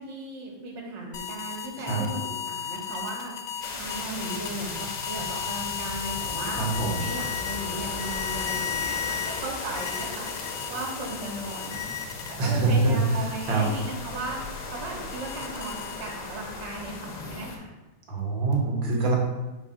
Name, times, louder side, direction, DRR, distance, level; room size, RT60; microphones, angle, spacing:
voice 1, 0.0-4.7 5.1-6.6 7.0-10.4 10.7-11.8 12.3-17.7, right 2 dB, 70° right, -2 dB, 2.0 m, -37 dB
sound 1, 1.1-12.6 13.0-16.4, left 8 dB, 70° left, 0.9 m, -35 dB
sound 2, 3.6-17.6, left 3 dB, 90° left, 1.6 m, -37 dB
voice 2, 6.6-7.1 12.4-13.7 18.1-19.2, right 3 dB, 90° right, -1 dB, 1.9 m, -25 dB
4.6 x 3.7 x 5.6 m, 1.1 s
omnidirectional pair, 2.0 m